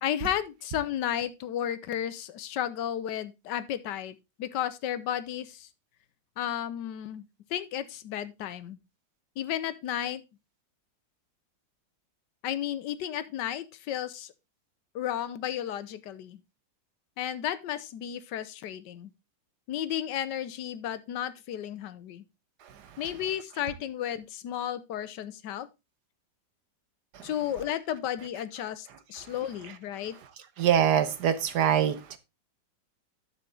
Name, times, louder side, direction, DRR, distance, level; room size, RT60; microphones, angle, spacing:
voice 1, 0.0-5.7 6.4-7.2 7.5-8.8 9.4-10.2 12.4-14.3 14.9-16.4 17.2-19.1 19.7-22.2 23.0-25.7 27.2-30.2, left 10 dB, 75° left, 1.4 m, -33 dB
voice 2, 30.6-32.2, right 9 dB, 70° right, 1.5 m, -24 dB
9.5 x 6.9 x 3.8 m
omnidirectional pair, 1.9 m